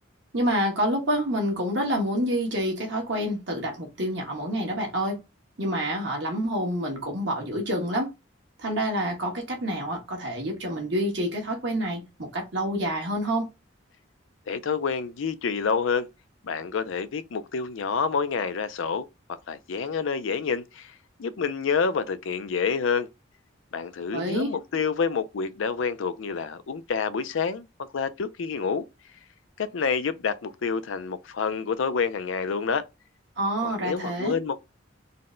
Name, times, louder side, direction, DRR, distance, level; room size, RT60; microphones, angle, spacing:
voice 1, 0.3-5.2 5.6-8.1 8.6-13.5 24.1-24.5 33.4-34.3, equal, 65° right, 1.5 m, -27 dB
voice 2, 14.5-16.1 16.4-20.9 21.2-23.1 23.7-27.7 27.9-28.9 29.6-32.9 33.6-34.6, left 5 dB, 80° left, 0.5 m, -28 dB
4.0 x 2.2 x 3.7 m
head